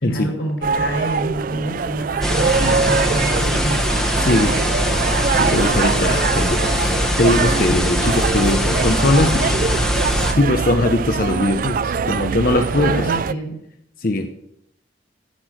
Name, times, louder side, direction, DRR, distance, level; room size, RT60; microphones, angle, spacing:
voice 1, 0.0-3.8 12.8-13.6, right 1 dB, 90° left, 1 dB, 4.9 m, -27 dB
sound 1, 0.6-13.3, right 5 dB, 45° right, 0.3 m, -23 dB
sound 2, 2.2-10.3, left 1 dB, ahead, 1.2 m, -21 dB
voice 2, 4.2-4.6 5.3-6.9 7.2-9.5 10.3-13.1 14.0-14.3, left 2 dB, 45° left, 5 dB, 0.7 m, -20 dB
15.0 x 6.1 x 6.3 m, 0.79 s
head